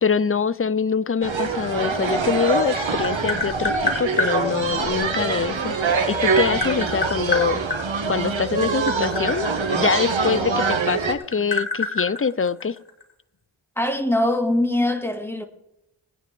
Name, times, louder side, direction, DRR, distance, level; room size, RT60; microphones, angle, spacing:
voice 1, 0.0-5.8 6.1-7.6 8.1-12.8, left 6 dB, 30° left, 0.5 m, -24 dB
sound 1, 1.2-11.1, right 4 dB, 70° right, 1.7 m, -24 dB
Tap, 2.5-4.3 5.7-7.8 8.6-10.7 11.0-13.0, left 3 dB, 55° left, 2.9 m, -27 dB
voice 2, 13.8-15.4, left 1 dB, 5° left, 1.9 m, -22 dB
20.5 x 9.4 x 3.5 m
cardioid pair, 45°, 47 cm